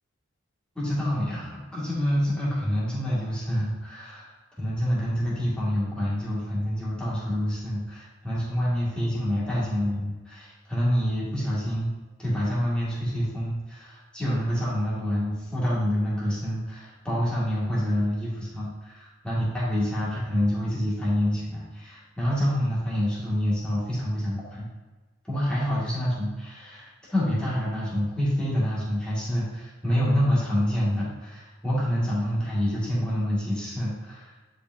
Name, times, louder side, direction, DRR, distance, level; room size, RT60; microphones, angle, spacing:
voice 1, 0.8-11.9 12.2-24.7 25.3-34.3, equal, 5° left, -8 dB, 1.9 m, -27 dB
10.0 x 5.1 x 2.6 m, 1.3 s
head